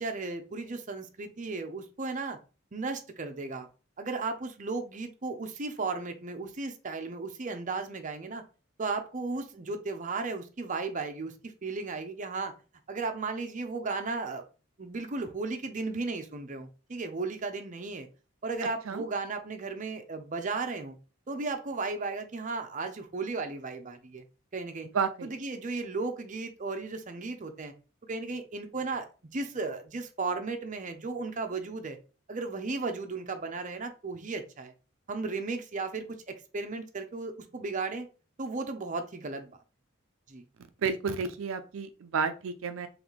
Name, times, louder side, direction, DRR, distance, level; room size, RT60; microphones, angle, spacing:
voice 1, 0.0-2.4 2.7-3.7 4.0-8.4 8.8-12.5 12.9-14.4 14.8-18.1 18.4-21.0 21.3-24.2 24.5-24.9 25.2-27.7 28.0-29.0 29.3-32.0 32.3-34.7 35.1-38.1 38.4-39.5 40.3-40.4, right 3 dB, 40° right, 6 dB, 0.6 m, -35 dB
voice 2, 24.9-25.3 40.8-42.9, right 5 dB, 80° right, 8 dB, 0.4 m, -31 dB
4.0 x 3.2 x 3.1 m, 0.34 s
head